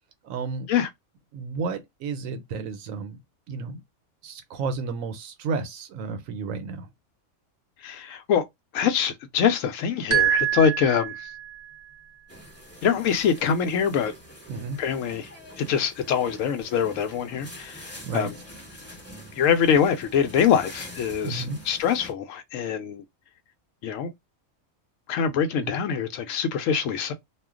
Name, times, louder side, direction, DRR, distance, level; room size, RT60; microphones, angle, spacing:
voice 1, 0.2-0.7 1.3-3.2 3.5-3.8 4.2-6.9 14.5-14.8 18.0-18.3 21.2-21.6 25.6-25.7, right 4 dB, 85° right, 1.0 m, -32 dB
voice 2, 7.8-8.4 8.7-11.3 12.8-14.1 14.8-15.3 15.6-18.3 19.3-23.0 23.8-24.1 25.1-27.1, left 7 dB, 75° left, 0.9 m, -24 dB
sound 1, 10.1-11.7, right 10 dB, 45° right, 0.6 m, -25 dB
sound 2, 12.3-22.1, equal, 10° left, 1.1 m, -45 dB
2.4 x 2.2 x 3.6 m
omnidirectional pair, 1.4 m